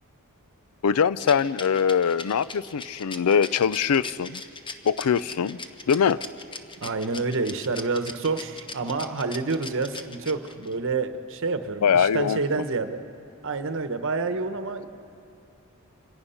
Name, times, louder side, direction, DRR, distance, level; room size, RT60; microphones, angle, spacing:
voice 1, 0.8-4.4 4.8-5.6 5.9-6.2 11.8-12.4, left 7 dB, 75° left, 17 dB, 0.4 m, -22 dB
Rattle, 1.2-10.7, left 3 dB, 20° left, 0.9 m, -39 dB
voice 2, 6.8-13.0 13.4-14.9, right 3 dB, 60° right, 9 dB, 1.0 m, -28 dB
26.5 x 18.0 x 5.7 m, 2.9 s
head